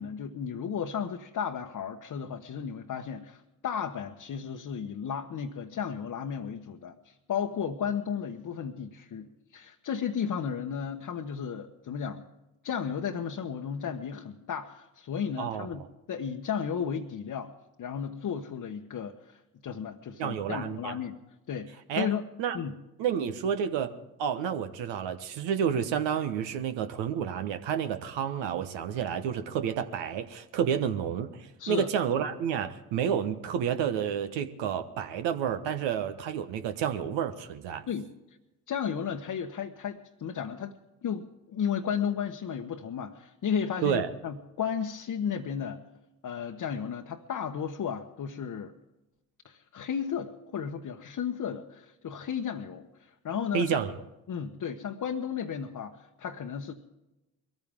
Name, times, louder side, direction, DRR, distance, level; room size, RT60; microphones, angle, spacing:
voice 1, 0.0-12.2 12.6-17.5 17.8-21.2 21.5-22.3 22.5-22.7 31.6-31.9 37.9-38.4 38.7-40.7 41.0-45.8 46.2-48.7 49.4-53.8 54.3-56.7, left 7 dB, 40° left, 2 dB, 1.1 m, -34 dB
voice 2, 15.4-15.7 20.2-20.9 21.9-22.1 22.4-22.6 23.0-23.9 24.2-37.9 43.8-44.1 53.5-53.9, right 8 dB, 65° right, 9 dB, 1.2 m, -30 dB
22.0 x 14.5 x 3.6 m, 0.98 s
hypercardioid pair, 60°, 47 cm